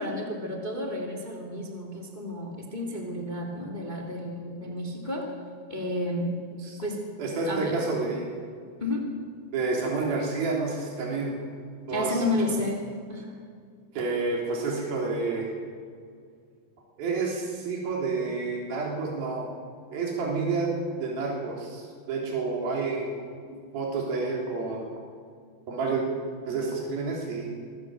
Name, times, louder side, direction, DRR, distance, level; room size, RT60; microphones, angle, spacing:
voice 1, 0.0-5.3 5.7-6.3 6.8-7.1 7.4-7.8 8.8-9.1 11.9-12.8 13.1-13.4, left 1 dB, 15° left, 0 dB, 2.4 m, -31 dB
voice 2, 7.2-8.3 9.5-11.4 11.9-12.2 12.5-12.6 13.9-15.5 17.0-19.5 19.9-20.7 21.0-23.1 23.5-24.8 25.7-26.0 26.5-27.5, right 4 dB, 70° right, -2 dB, 5.4 m, -29 dB
25.0 x 15.5 x 7.7 m, 2.2 s
omnidirectional pair, 4.4 m